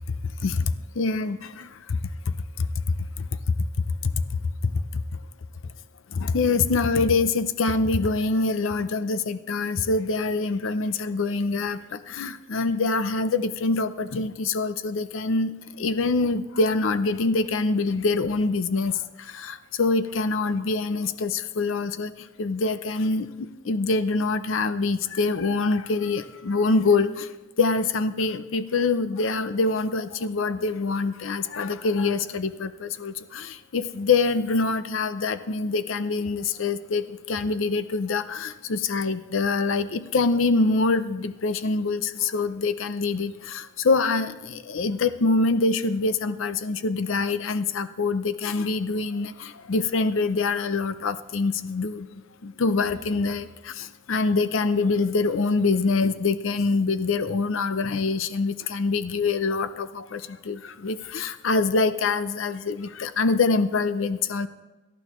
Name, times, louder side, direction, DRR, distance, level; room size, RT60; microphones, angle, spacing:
voice 1, 1.0-2.0 2.6-2.7 4.9-5.0 6.1-18.9 19.2-22.1 22.4-27.3 27.6-52.1 52.4-64.5, left 3 dB, 80° left, 12 dB, 0.6 m, -25 dB
18.0 x 12.0 x 3.1 m, 1.1 s
head